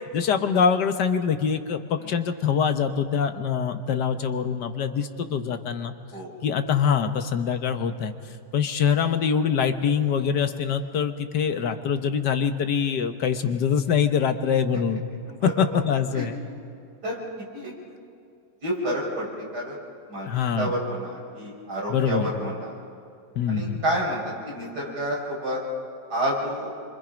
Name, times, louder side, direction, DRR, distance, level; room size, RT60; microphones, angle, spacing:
voice 1, 0.1-5.9 6.4-8.1 8.5-15.0 15.6-16.4 20.3-20.7 21.9-22.3 23.4-23.8, left 7 dB, 75° left, 7 dB, 1.7 m, -24 dB
voice 2, 15.3-15.8 16.1-16.3 17.0-17.7 18.6-19.8 20.1-20.3 20.6-22.8 23.5-25.6 26.1-26.7, equal, 65° right, -3 dB, 6.5 m, -30 dB
27.5 x 25.0 x 5.2 m, 2.5 s
omnidirectional pair, 1.9 m